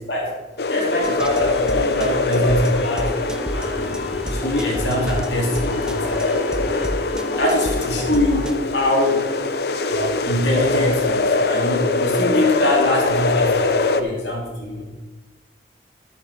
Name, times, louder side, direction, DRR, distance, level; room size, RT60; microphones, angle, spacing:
sound 1, 0.6-14.0, left 3 dB, 60° left, 0.6 m, -23 dB
voice 1, 0.7-3.1 3.5-6.2 7.4-9.3 9.9-14.8, left 1 dB, 80° left, -1 dB, 2.4 m, -23 dB
sound 2, 1.0-8.6, equal, 5° right, 0.6 m, -31 dB
12.5 x 7.3 x 4.7 m, 1.1 s
head